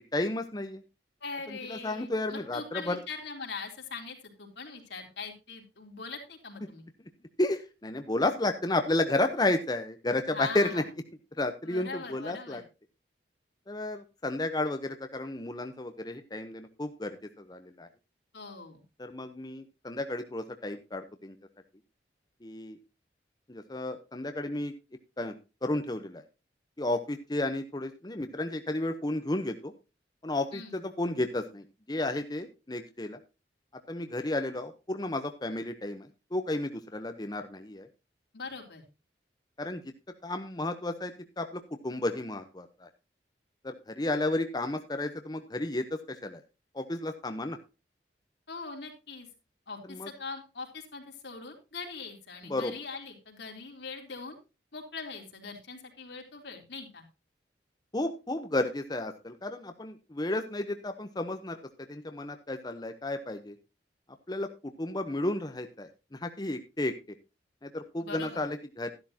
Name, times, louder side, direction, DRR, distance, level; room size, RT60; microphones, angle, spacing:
voice 1, 0.1-0.8 1.7-3.0 7.4-10.8 11.4-12.6 13.7-17.9 19.0-21.4 22.4-22.8 23.5-24.7 25.2-25.3 25.6-26.2 26.8-29.7 30.2-33.2 33.9-37.9 39.6-39.8 40.2-42.9 43.6-46.4 46.7-47.6 49.9-50.1 52.5-52.7 57.9-61.6 61.9-63.6 64.3-64.5 64.8-66.9 67.6-68.9, left 2 dB, 25° left, 7 dB, 0.8 m, -32 dB
voice 2, 1.2-6.9 10.3-10.9 11.6-12.6 18.3-18.8 30.5-30.8 38.3-38.8 48.5-49.3 49.7-54.4 54.7-57.0 68.0-68.4, left 4 dB, 80° left, 2 dB, 3.6 m, -41 dB
12.5 x 12.0 x 2.8 m, 0.29 s
head